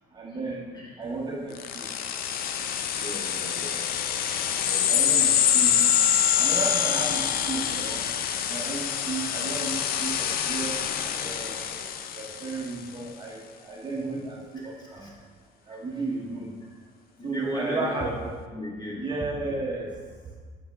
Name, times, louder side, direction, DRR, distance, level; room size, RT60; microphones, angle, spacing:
voice 1, 0.1-1.9 4.9-5.8 6.4-8.1 8.5-10.8 11.2-11.6 12.1-15.1 15.7-16.6 17.2-18.1 18.9-20.0, right 3 dB, 25° right, -2 dB, 1.1 m, -33 dB
sound 1, 1.6-12.7, left 9 dB, 60° left, 0.5 m, -25 dB
voice 2, 2.9-3.7 4.6-5.2 14.8-15.1 15.7-15.8 17.2-18.1 18.5-19.0, equal, 25° left, -4 dB, 1.8 m, -36 dB
7.9 x 5.0 x 3.5 m, 1.5 s
cardioid pair, 110°, 17 cm